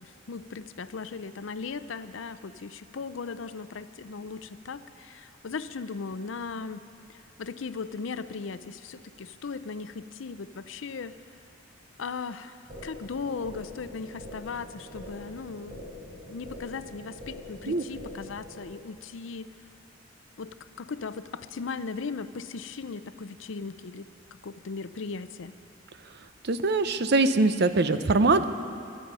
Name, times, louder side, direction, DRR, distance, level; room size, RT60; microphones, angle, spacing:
voice 1, 0.0-6.8 7.1-11.1 12.0-19.5 20.4-24.1 24.4-25.5, left 4 dB, 75° left, 13 dB, 0.5 m, -38 dB
sound 1, 12.7-18.7, left 1 dB, 35° right, 4.4 m, -44 dB
voice 2, 26.4-28.4, right 3 dB, 55° right, 11 dB, 0.7 m, -22 dB
24.5 x 10.0 x 5.5 m, 2.5 s
head